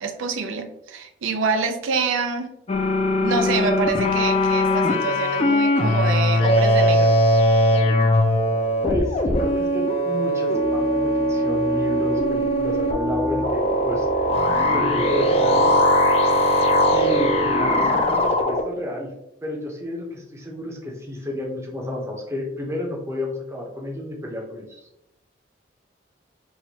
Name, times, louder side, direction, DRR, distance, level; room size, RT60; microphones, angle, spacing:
voice 1, 0.0-2.5 3.2-7.2, right 5 dB, 90° right, 6 dB, 0.4 m, -26 dB
sound 1, 2.7-18.6, left 1 dB, 30° left, 0.3 m, -20 dB
voice 2, 8.8-14.3 14.6-15.8 16.9-19.1 19.4-24.9, left 1 dB, 15° right, -1 dB, 0.6 m, -31 dB
4.3 x 2.2 x 2.7 m, 0.84 s
head